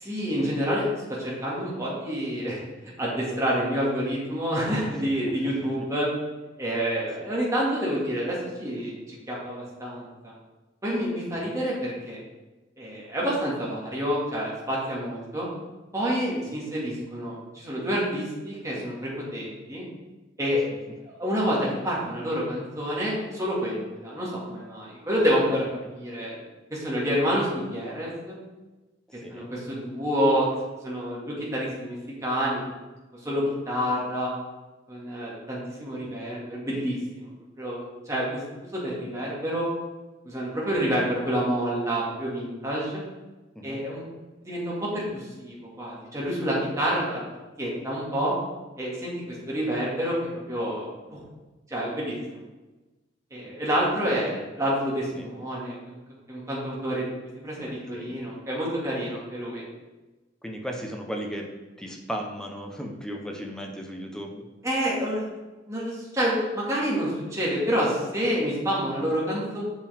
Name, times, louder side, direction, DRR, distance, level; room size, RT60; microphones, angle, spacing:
voice 1, 0.0-0.9 1.2-2.6 3.0-6.1 6.6-10.3 10.8-12.2 12.8-15.5 15.9-19.8 20.4-20.6 21.1-21.6 21.8-25.7 25.9-26.4 26.7-28.4 29.3-30.5 30.8-32.0 32.2-32.8 33.2-34.3 34.9-37.3 37.6-39.7 40.2-43.0 43.6-44.0 44.4-47.2 47.6-48.3 48.8-50.1 50.5-51.2 51.7-52.4 53.3-56.0 56.3-57.1 57.4-59.6 64.6-65.2 65.7-69.6, equal, 15° right, -6 dB, 1.9 m, -28 dB
voice 2, 4.9-5.7 7.2-7.3 11.3-11.5 16.3-16.6 29.1-29.5 43.5-43.8 55.1-55.3 57.5-58.1 60.4-61.5 61.8-64.5, equal, 5° left, 1 dB, 0.8 m, -37 dB
6.8 x 5.7 x 3.5 m, 1.1 s
head